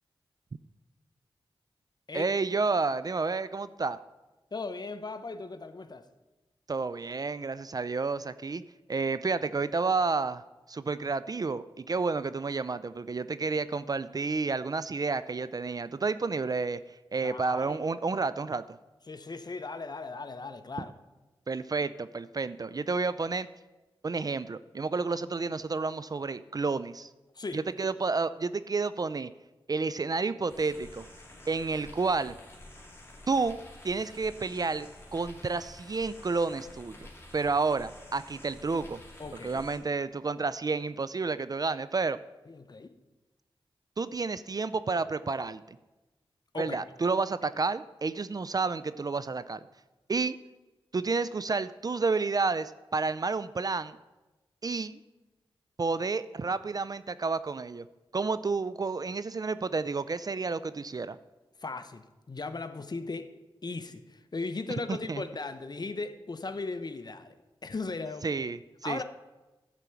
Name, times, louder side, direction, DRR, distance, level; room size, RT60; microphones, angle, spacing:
voice 1, 2.1-4.0 6.7-8.6 8.9-10.4 10.7-16.8 17.1-18.6 21.5-23.5 24.0-27.1 27.5-29.3 29.7-31.0 31.5-32.4 33.3-33.6 33.8-37.1 37.3-39.0 39.4-42.2 44.0-45.6 46.6-49.6 50.1-50.4 50.9-54.0 54.6-55.0 55.8-57.8 58.1-61.2 64.9-65.2 68.2-69.0, right 4 dB, 40° right, 15 dB, 0.4 m, -30 dB
voice 2, 4.5-6.1 17.2-17.8 19.1-20.9 27.3-27.9 39.2-39.6 42.5-42.9 46.5-46.8 61.6-63.3 63.6-67.3 67.6-68.3 68.8-69.0, left 3 dB, 45° left, 9 dB, 0.8 m, -37 dB
sound 1, 30.5-39.8, left 1 dB, 25° left, 2.3 m, -50 dB
11.0 x 4.5 x 6.9 m, 1.1 s
cardioid pair, 45°, 10 cm